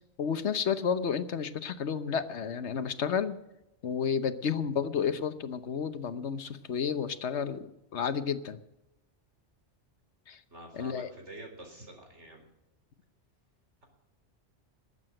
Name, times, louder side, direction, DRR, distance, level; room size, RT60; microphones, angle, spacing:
voice 1, 0.2-3.4 3.8-8.6 10.3-10.4 10.7-11.1, left 7 dB, 75° left, 11 dB, 1.3 m, -31 dB
voice 2, 10.5-12.4, right 1 dB, 80° right, 2 dB, 4.4 m, -47 dB
20.5 x 8.2 x 7.7 m, 0.90 s
omnidirectional pair, 1.2 m